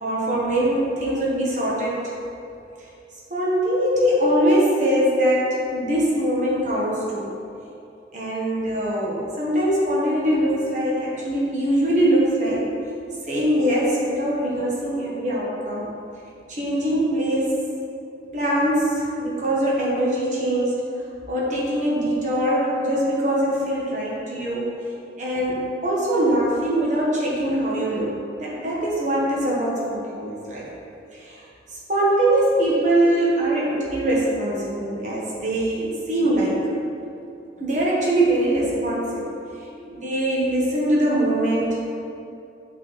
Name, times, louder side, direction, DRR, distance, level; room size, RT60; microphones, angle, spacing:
voice 1, 0.0-2.0 3.3-7.3 8.1-12.7 13.3-15.9 16.5-17.5 18.3-20.7 21.3-24.7 25.2-28.1 28.4-30.6 31.1-31.3 31.9-36.6 37.6-39.3 39.9-41.9, right 1 dB, 45° right, -5 dB, 1.3 m, -22 dB
6.2 x 3.9 x 4.0 m, 2.7 s
head